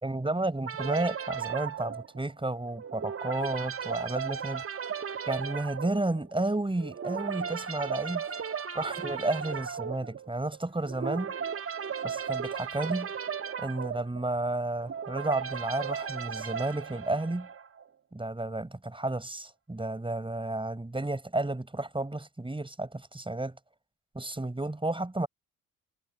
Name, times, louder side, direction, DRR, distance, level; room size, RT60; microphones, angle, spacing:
voice 1, 0.0-4.6 5.3-8.2 8.7-11.3 12.0-13.1 13.6-17.5 18.1-23.6 24.1-25.3, right 2 dB, 10° right, 4.8 m, -32 dB
sound 1, 0.6-17.8, right 7 dB, 30° right, 1.6 m, -36 dB
figure-of-eight pair, 45°, 44 cm